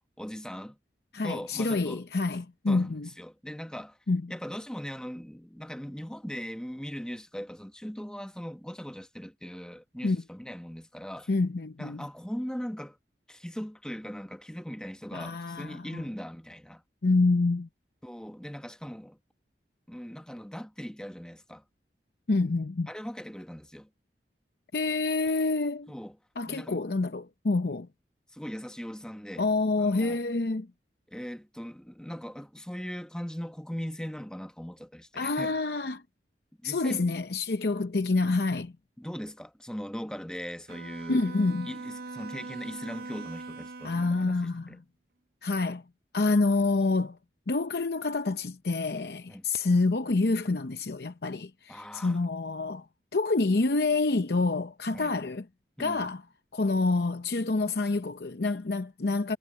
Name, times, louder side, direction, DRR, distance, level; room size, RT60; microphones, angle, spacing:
voice 1, 0.2-0.8 1.2-2.0 2.7-4.0 4.3-11.3 11.8-13.0 13.3-16.8 18.0-19.2 19.9-21.6 22.9-23.9 25.9-26.2 26.5-26.8 27.7-27.8 28.3-29.5 29.8-30.2 31.1-35.6 36.6-37.2 39.0-41.3 41.7-44.8 49.3-49.4 51.7-52.2 54.9-55.1 55.8-56.1, equal, 5° left, 0.9 m, -39 dB
voice 2, 1.1-3.1 4.1-4.2 10.0-10.2 11.3-12.0 15.1-16.0 17.0-17.7 22.3-22.9 24.7-25.9 26.4-27.9 29.4-30.7 35.1-36.0 36.6-38.7 41.1-41.7 43.8-44.8 45.4-45.8 46.1-47.2 47.5-52.9 53.1-55.4 55.8-56.2 56.5-59.4, left 3 dB, 60° left, 0.7 m, -27 dB
Bowed string instrument, 40.7-44.3, right 3 dB, 55° right, 0.6 m, -41 dB
head